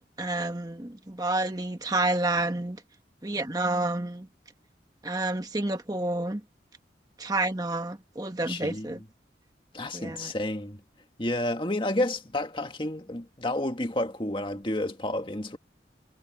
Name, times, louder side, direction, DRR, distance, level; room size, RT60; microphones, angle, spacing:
voice 1, 0.0-2.8 3.2-4.3 5.0-6.4 7.2-9.0 9.9-10.3, right 2 dB, 20° right, 1.2 m, -29 dB
voice 2, 8.4-9.0 9.7-10.8 11.2-15.6, left 1 dB, 30° left, 1.9 m, -30 dB
head